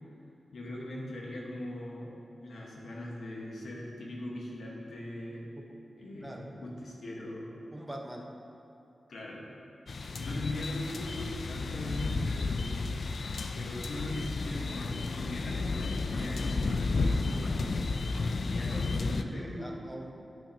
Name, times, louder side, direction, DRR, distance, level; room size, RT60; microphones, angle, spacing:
voice 1, 0.5-2.1 2.4-5.5 6.0-7.5 9.1-9.4 10.2-12.8 13.5-17.7 18.4-19.8, left 1 dB, 80° left, -3 dB, 1.3 m, -40 dB
voice 2, 6.2-6.5 7.7-8.3 18.7-20.1, right 1 dB, 10° right, 1 dB, 0.6 m, -44 dB
sound 1, 9.9-19.2, left 3 dB, 55° left, 0.3 m, -32 dB
11.5 x 5.6 x 2.8 m, 2.8 s
wide cardioid pair, 160°, 0 cm